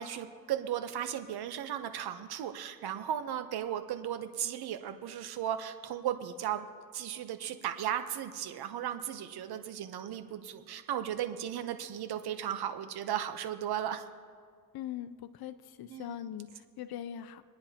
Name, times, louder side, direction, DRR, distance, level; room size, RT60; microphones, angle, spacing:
voice 1, 0.0-6.6 6.9-14.0 15.9-16.3, right 10 dB, 80° right, 8 dB, 0.9 m, -36 dB
voice 2, 14.7-17.4, left 10 dB, 75° left, 10 dB, 0.6 m, -41 dB
26.5 x 10.0 x 2.9 m, 2.1 s
cardioid pair, 65°, 37 cm